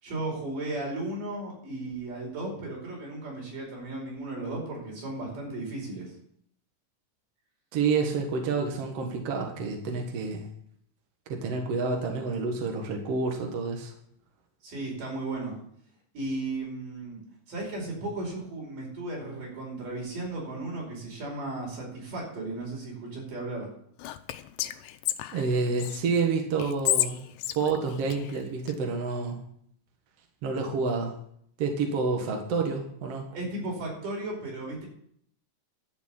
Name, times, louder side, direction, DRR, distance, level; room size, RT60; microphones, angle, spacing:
voice 1, 0.0-6.1 14.6-15.6 16.1-17.2 17.5-23.7 33.3-34.9, right 2 dB, 70° right, -2 dB, 6.6 m, -35 dB
voice 2, 7.7-10.5 11.3-13.9 25.3-27.2 27.6-29.4 30.4-31.1 31.6-33.4, right 4 dB, 50° right, 2 dB, 2.4 m, -28 dB
Whispering, 24.0-26.0 26.6-28.8, left 13 dB, 90° left, 2.4 m, -31 dB
12.0 x 7.3 x 8.9 m, 0.68 s
omnidirectional pair, 3.9 m